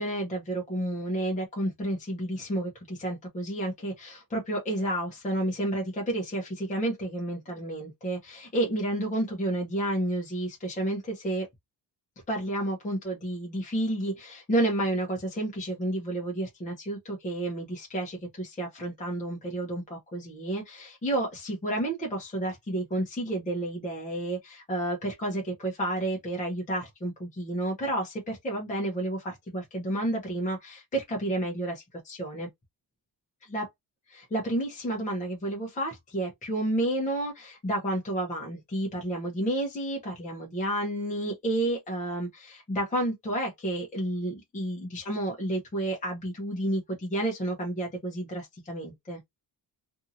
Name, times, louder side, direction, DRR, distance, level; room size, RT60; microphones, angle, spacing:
voice 1, 0.0-11.5 12.3-32.5 33.5-33.7 34.1-49.2, right 1 dB, 20° left, 0.8 m, -31 dB
2.7 x 2.6 x 2.6 m
wide cardioid pair, 145°, 40 cm